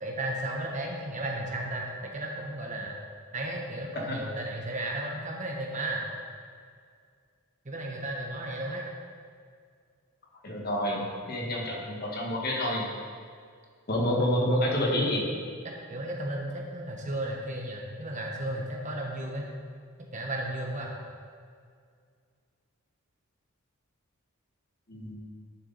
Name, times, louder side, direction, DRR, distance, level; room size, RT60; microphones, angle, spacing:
voice 1, 0.0-3.0 3.3-6.0 7.6-8.8 11.0-11.1 15.9-19.5 20.1-20.9, right 1 dB, 35° right, -1 dB, 1.2 m, -34 dB
voice 2, 10.4-12.8 13.9-15.2 24.9-25.2, left 1 dB, 45° left, -1 dB, 1.6 m, -28 dB
11.0 x 7.3 x 4.1 m, 2.1 s
head